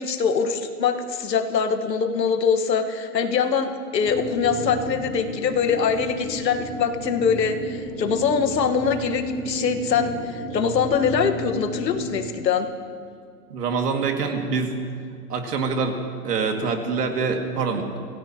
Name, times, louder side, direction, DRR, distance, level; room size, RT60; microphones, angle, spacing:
voice 1, 0.0-12.7, left 6 dB, 85° left, 7 dB, 1.6 m, -23 dB
sound 1, 4.0-12.3, right 2 dB, ahead, 2.4 m, -33 dB
voice 2, 13.5-14.7 15.3-16.0 16.2-18.0, right 5 dB, 70° right, 3 dB, 2.3 m, -25 dB
25.5 x 17.0 x 3.0 m, 2.2 s
hypercardioid pair, 170°, 49 cm